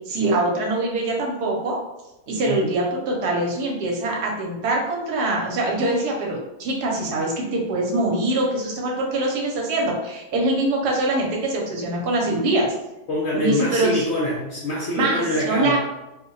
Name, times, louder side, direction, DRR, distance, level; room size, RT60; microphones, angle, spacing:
voice 1, 0.1-1.8 2.3-12.7 13.3-14.0 14.9-15.8, right 2 dB, 75° right, -1 dB, 1.2 m, -23 dB
voice 2, 13.1-15.8, left 1 dB, 60° left, -4 dB, 0.7 m, -25 dB
2.7 x 2.2 x 3.8 m, 0.97 s
omnidirectional pair, 1.7 m